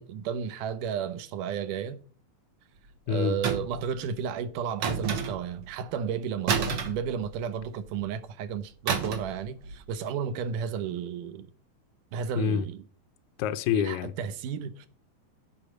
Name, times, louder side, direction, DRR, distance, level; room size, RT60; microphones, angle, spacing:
voice 1, 0.0-2.0 3.1-11.5 12.1-12.8 13.7-14.9, right 7 dB, 75° right, 2.3 m, -33 dB
voice 2, 3.1-3.4 12.4-12.7 13.4-14.1, left 8 dB, 80° left, 1.8 m, -26 dB
sound 1, 3.4-3.9 4.8-5.6 6.5-7.7 8.9-9.4 9.6-9.9, right 6 dB, 55° right, 1.8 m, -29 dB
8.5 x 5.6 x 7.9 m
omnidirectional pair, 4.0 m